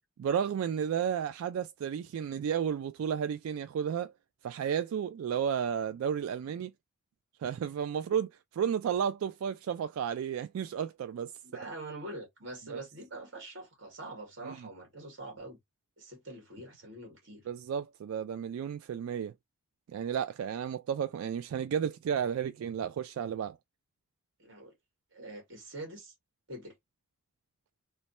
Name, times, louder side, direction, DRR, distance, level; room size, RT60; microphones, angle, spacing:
voice 1, 0.2-4.1 4.4-6.7 7.4-11.3 12.7-12.8 14.4-14.7 17.5-19.3 19.9-23.6, right 8 dB, 90° right, 0.3 m, -32 dB
voice 2, 11.4-15.6 16.0-17.5 24.4-24.7 25.1-26.1 26.5-26.8, right 2 dB, 60° right, 1.7 m, -44 dB
3.2 x 2.2 x 4.0 m
head